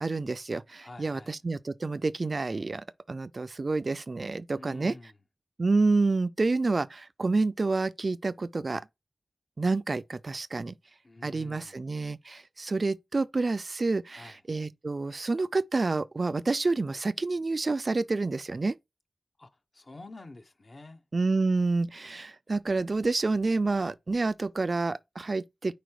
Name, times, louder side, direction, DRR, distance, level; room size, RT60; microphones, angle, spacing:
voice 1, 0.0-4.9 5.6-8.9 9.6-10.7 11.2-18.8 21.1-25.7, right 3 dB, 55° right, 0.4 m, -28 dB
voice 2, 0.8-1.3 4.6-5.2 11.0-11.8 14.1-14.4 19.4-21.0, left 2 dB, 55° left, 0.9 m, -48 dB
5.1 x 4.4 x 4.6 m
wide cardioid pair, 60°, 0 cm